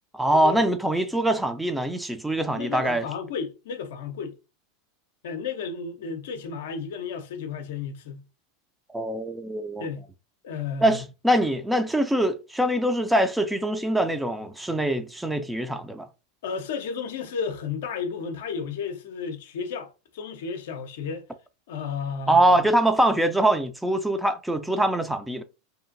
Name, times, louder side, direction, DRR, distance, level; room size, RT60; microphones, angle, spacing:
voice 1, 0.1-3.0 8.9-9.9 10.8-16.1 22.3-25.4, right 1 dB, 5° right, 0.4 m, -23 dB
voice 2, 2.5-4.3 5.2-8.2 9.8-10.1 10.4-11.0 16.4-21.2 21.7-22.6, left 6 dB, 65° left, 0.5 m, -33 dB
2.7 x 2.4 x 2.5 m
hypercardioid pair, 85°, 0 cm